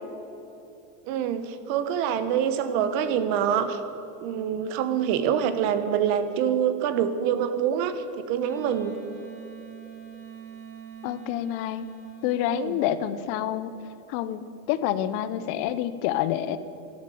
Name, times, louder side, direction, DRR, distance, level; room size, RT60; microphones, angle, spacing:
voice 1, 1.1-3.8 4.2-8.9 12.5-12.8, right 8 dB, 60° right, 11 dB, 1.3 m, -25 dB
Wind instrument woodwind instrument, 8.4-12.5, right 8 dB, 30° right, 3.9 m, -43 dB
voice 2, 11.0-11.9 12.2-13.7 14.1-16.6, left 12 dB, 60° left, 14 dB, 0.9 m, -28 dB
12.5 x 11.5 x 7.9 m, 2.9 s
supercardioid pair, 125°, 42 cm